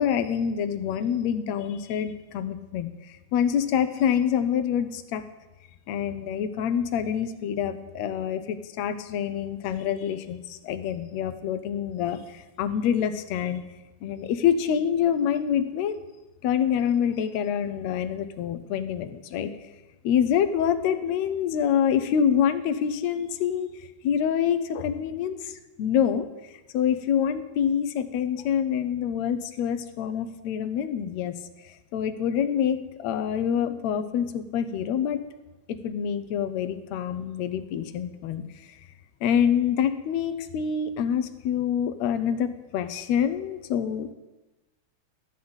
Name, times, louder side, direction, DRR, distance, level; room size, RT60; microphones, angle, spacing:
voice 1, 0.0-5.2 5.9-13.6 14.0-16.0 16.4-19.5 20.0-23.7 24.0-26.3 26.7-31.4 31.6-35.2 35.7-38.4 39.2-44.1, left 8 dB, 75° left, 11 dB, 1.8 m, -26 dB
12.5 x 5.7 x 7.8 m, 1.1 s
omnidirectional pair, 3.4 m